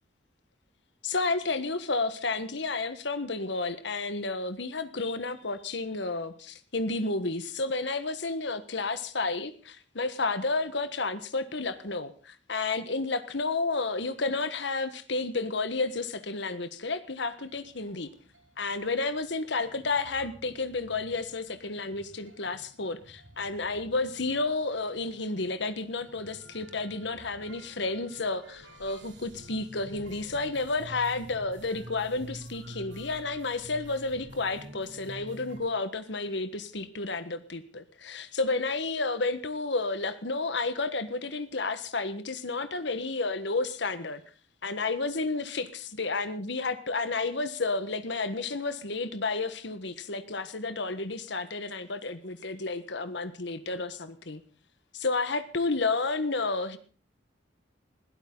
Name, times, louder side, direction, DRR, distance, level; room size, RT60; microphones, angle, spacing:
voice 1, 1.0-18.1 18.6-44.2 44.6-54.4 54.9-56.8, left 3 dB, 65° left, 11 dB, 1.5 m, -31 dB
sound 1, 17.4-35.6, equal, 75° right, 6.6 m, -49 dB
21.0 x 16.5 x 4.0 m, 0.40 s
head